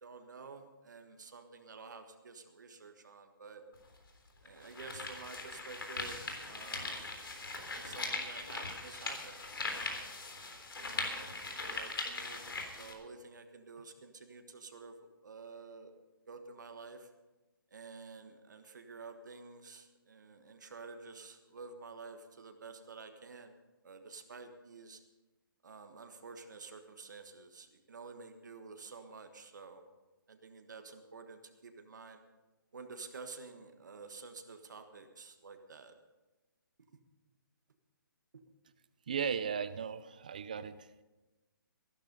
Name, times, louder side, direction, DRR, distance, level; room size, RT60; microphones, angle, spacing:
voice 1, 0.0-3.6 4.4-7.2 7.7-9.4 9.7-10.1 10.7-15.0 15.2-15.9 16.3-17.1 17.7-23.5 23.8-25.0 25.6-29.8 30.3-32.2 32.7-35.9 38.3-38.4, right 4 dB, 55° right, 6 dB, 1.4 m, -50 dB
sound 1, 3.7-3.8 4.5-12.9, left 3 dB, 90° left, 3.6 m, -40 dB
voice 2, 39.1-40.8, right 7 dB, 20° right, 14 dB, 0.4 m, -36 dB
15.5 x 12.0 x 5.4 m, 1.1 s
hypercardioid pair, 180°, 12 cm